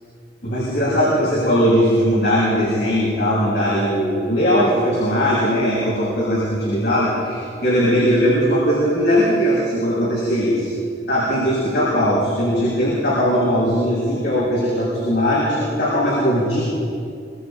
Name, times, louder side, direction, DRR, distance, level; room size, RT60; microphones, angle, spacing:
voice 1, 0.4-10.7 11.1-16.6, equal, 65° left, -7 dB, 7.7 m, -19 dB
26.0 x 26.0 x 5.5 m, 2.3 s
head